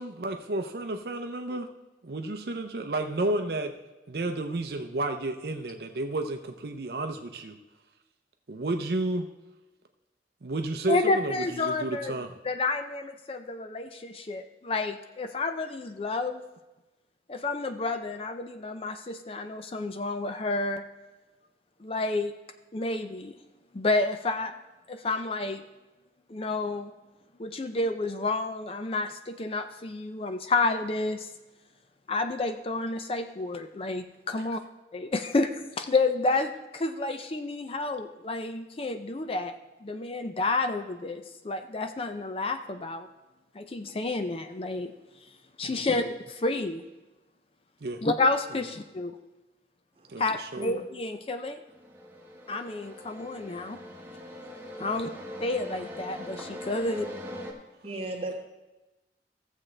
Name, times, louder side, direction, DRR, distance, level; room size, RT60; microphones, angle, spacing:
voice 1, 0.0-1.7 2.0-3.7 4.1-7.6 8.5-9.3 10.4-12.3 45.6-45.8 47.8-48.0 50.1-50.6 54.8-55.0, right 2 dB, 60° right, 5 dB, 0.6 m, -31 dB
voice 2, 10.9-12.1 12.4-16.4 17.3-20.8 21.8-22.3 22.7-23.4 23.7-24.5 24.9-25.6 26.3-26.9 27.4-31.3 32.1-34.6 34.9-39.5 39.8-43.1 43.5-44.9 45.6-46.8 48.0-49.2 50.2-51.6 52.5-53.8 54.8-55.1 55.4-57.1, left 3 dB, 30° left, 8 dB, 0.4 m, -30 dB
sound 1, 51.7-57.5, left 1 dB, 10° right, 1.0 m, -42 dB
voice 3, 57.8-58.4, right 1 dB, 30° right, 0 dB, 1.5 m, -35 dB
15.0 x 7.3 x 3.3 m, 1.1 s
head